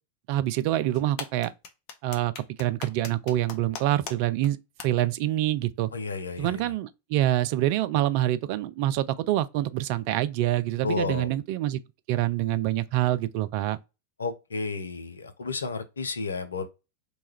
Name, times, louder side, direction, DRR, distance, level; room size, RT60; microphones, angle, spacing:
voice 1, 0.3-1.5 2.0-2.3 2.6-4.6 4.8-5.9 6.4-11.8 12.1-13.8, right 14 dB, 45° right, 0.3 m, -26 dB
sound 1, 0.9-4.1 4.4-4.5 4.8-4.9, left 6 dB, 45° left, 0.8 m, -38 dB
voice 2, 5.9-6.7 10.8-11.3 14.2-16.7, left 4 dB, 75° left, 0.5 m, -32 dB
3.1 x 2.3 x 4.3 m
figure-of-eight pair, 90°, 0 cm